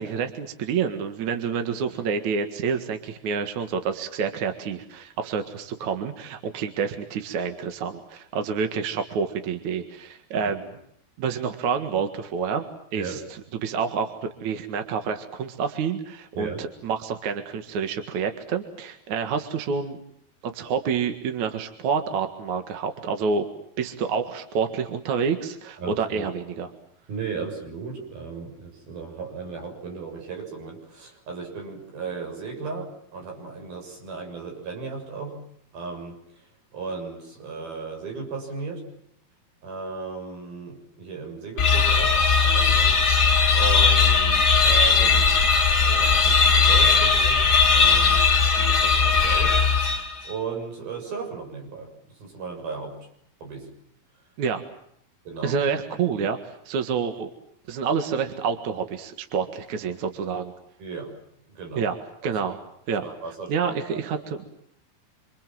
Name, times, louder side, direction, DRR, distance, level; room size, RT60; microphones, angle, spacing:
voice 1, 0.0-10.7 11.2-12.6 12.9-20.0 20.4-23.5 23.8-26.7 54.4-54.6 55.4-57.3 57.7-60.5 61.8-62.0 62.2-62.6 62.9-63.0 63.5-64.4, right 6 dB, 55° right, 7 dB, 2.9 m, -28 dB
voice 2, 25.8-26.3 27.1-35.4 35.7-36.2 36.7-38.8 39.6-43.0 43.5-45.4 45.8-49.6 50.2-51.9 52.2-53.0 53.4-53.7 55.3-55.6 60.8-61.1 61.5-61.9 63.0-64.0, right 4 dB, 70° right, 2 dB, 9.0 m, -35 dB
sound 1, 41.6-50.3, left 5 dB, 30° left, 2.2 m, -18 dB
27.5 x 26.5 x 7.7 m, 0.72 s
omnidirectional pair, 4.4 m